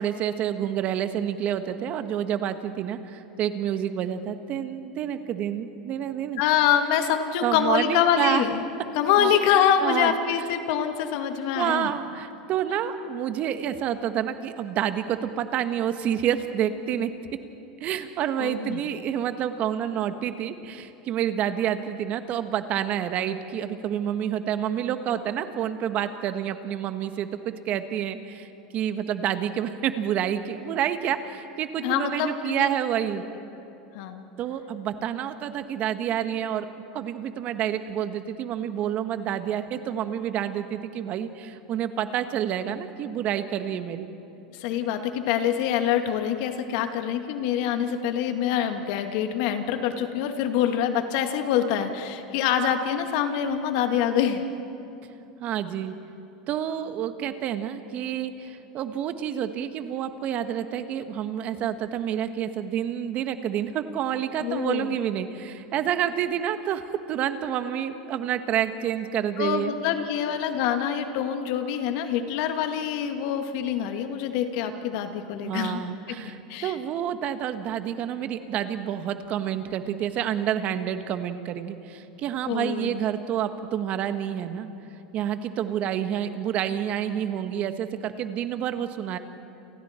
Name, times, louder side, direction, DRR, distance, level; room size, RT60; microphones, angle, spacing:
voice 1, 0.0-6.4 7.4-8.4 9.2-9.3 9.8-10.1 11.5-17.1 17.8-33.2 34.4-36.7 36.9-44.1 55.4-55.9 56.5-66.8 67.1-69.7 75.4-84.7 85.1-89.2, right 10 dB, 45° right, 9 dB, 1.5 m, -28 dB
voice 2, 6.4-8.6 8.9-11.9 18.4-18.8 31.8-32.7 33.9-34.3 44.6-54.4 64.4-64.9 69.4-75.8 76.1-76.7 82.5-83.0, left 9 dB, 65° left, 6 dB, 2.2 m, -25 dB
30.0 x 28.0 x 4.5 m, 2.8 s
hypercardioid pair, 105°, 3 cm